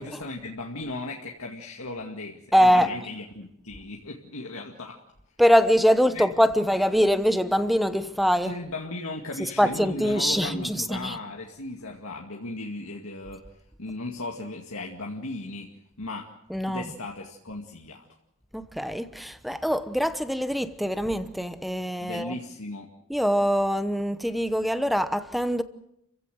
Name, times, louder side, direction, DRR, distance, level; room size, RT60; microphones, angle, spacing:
voice 1, 0.0-5.0 6.1-6.3 8.4-13.4 13.8-15.7 16.0-16.3 16.7-18.1 22.0-22.9, left 2 dB, 70° left, 2.3 m, -36 dB
voice 2, 2.5-2.9 5.4-8.6 9.6-11.2 16.5-16.9 18.5-22.4 23.1-25.6, equal, ahead, 1.0 m, -23 dB
30.0 x 16.0 x 7.9 m
head